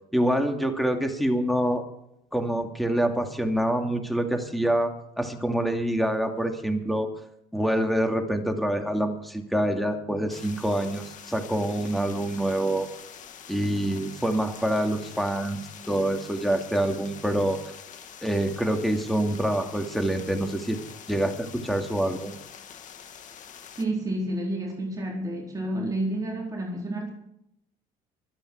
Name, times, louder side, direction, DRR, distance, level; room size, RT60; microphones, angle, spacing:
voice 1, 0.1-1.8 2.3-7.1 7.5-12.9 13.5-17.6 18.2-20.8 21.1-22.4, right 1 dB, ahead, 4 dB, 2.5 m, -26 dB
sound 1, 10.3-23.8, left 8 dB, 50° left, 2.1 m, -45 dB
voice 2, 23.7-27.1, right 1 dB, 20° right, -2 dB, 4.1 m, -30 dB
25.0 x 9.3 x 4.7 m, 0.78 s
cardioid pair, 110°, 16 cm